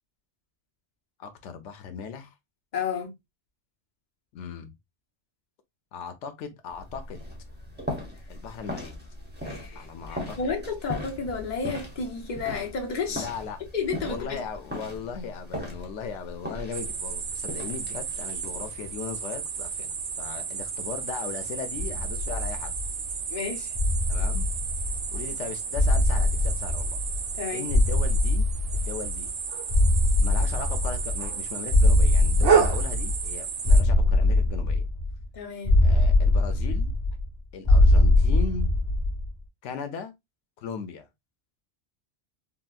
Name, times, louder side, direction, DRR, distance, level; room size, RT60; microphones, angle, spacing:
voice 1, 1.2-2.3 4.3-4.7 5.9-7.2 8.3-8.9 9.8-10.4 13.1-13.6 14.1-22.7 24.1-24.5 25.1-27.0 27.5-28.4 28.7-29.3 30.2-34.8 35.8-36.9 37.5-38.7 39.6-40.1 40.6-41.1, left 6 dB, 85° left, 0.9 m, -37 dB
voice 2, 2.7-3.1 9.4-13.3 13.7-14.4 23.3-23.7 27.3-27.7 35.3-35.8, left 5 dB, 45° left, 0.9 m, -32 dB
sound 1, 6.7-18.9, equal, 10° right, 0.7 m, -39 dB
sound 2, 16.7-33.8, right 6 dB, 85° right, 1.0 m, -31 dB
sound 3, 21.8-23.1 23.7-25.3 25.7-27.4 27.7-29.3 29.7-31.4 31.7-33.3 33.7-35.2 35.7-37.3 37.7-39.3, left 2 dB, 25° left, 1.1 m, -22 dB
3.9 x 2.0 x 2.3 m
omnidirectional pair, 1.2 m